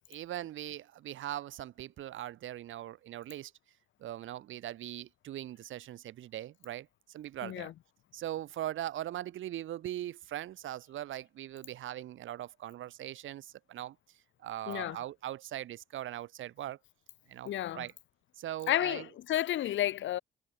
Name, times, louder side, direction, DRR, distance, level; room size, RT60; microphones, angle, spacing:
voice 1, 0.1-3.5 4.0-7.7 8.1-14.0 14.4-16.8 17.3-17.9 18.4-19.1, right 13 dB, 80° right, 5.1 m, -40 dB
voice 2, 7.4-7.7 14.7-15.0 17.4-17.8 18.7-20.2, left 12 dB, 70° left, 1.3 m, -31 dB
cardioid pair, 90°, 20 cm